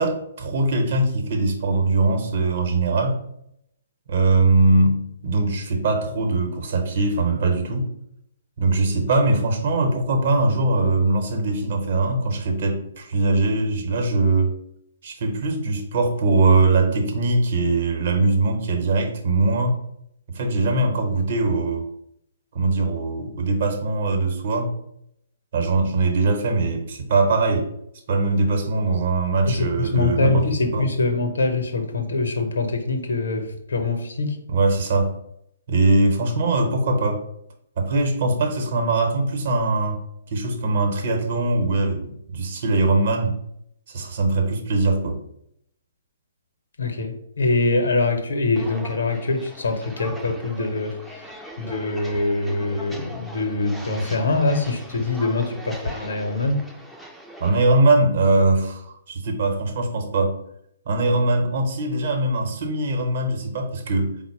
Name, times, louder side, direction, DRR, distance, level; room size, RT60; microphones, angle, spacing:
voice 1, 0.0-3.2 4.1-7.9 8.6-14.5 15.0-19.8 20.3-21.9 22.5-24.7 25.5-27.7 28.1-30.9 34.5-35.2 35.7-37.2 37.8-40.0 40.3-43.4 43.9-45.2 57.4-60.4 60.9-64.2, right 2 dB, 50° right, 0.9 m, -21 dB
voice 2, 29.4-34.4 46.8-51.2 51.6-56.6, left 3 dB, 70° left, 0.7 m, -24 dB
Walk footsteps, 48.5-57.6, equal, ahead, 0.4 m, -40 dB
4.0 x 2.1 x 4.5 m
figure-of-eight pair, 125°, 0 cm